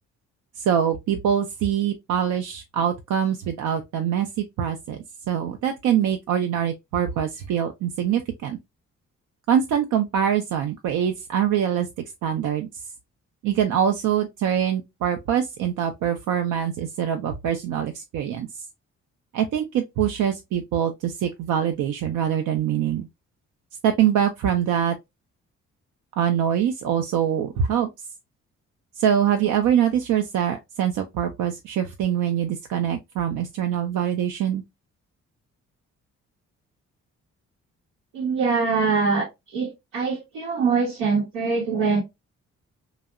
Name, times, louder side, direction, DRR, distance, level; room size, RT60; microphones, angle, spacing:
voice 1, 0.6-5.0 5.3-8.6 9.5-11.9 12.2-12.7 13.4-18.5 19.3-23.1 23.8-25.0 26.2-27.9 29.0-34.6, right 9 dB, 60° right, 0.4 m, -24 dB
voice 2, 38.1-42.0, right 4 dB, 85° right, 0.8 m, -23 dB
2.7 x 2.0 x 2.3 m
hypercardioid pair, 45°, 35 cm